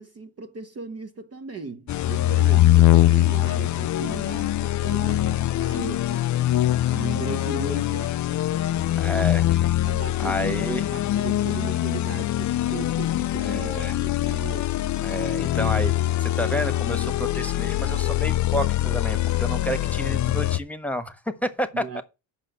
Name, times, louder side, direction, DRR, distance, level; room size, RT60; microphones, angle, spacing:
voice 1, 0.0-6.2 6.9-8.2 9.8-14.7 21.7-22.0, right 4 dB, 35° right, 0.9 m, -37 dB
sound 1, 1.9-20.6, left 14 dB, 40° left, 0.4 m, -23 dB
voice 2, 9.0-9.5 10.2-10.9 13.4-14.0 15.0-15.9 16.2-22.0, equal, 5° left, 1.3 m, -30 dB
7.7 x 5.7 x 6.7 m
cardioid pair, 105°, 45 cm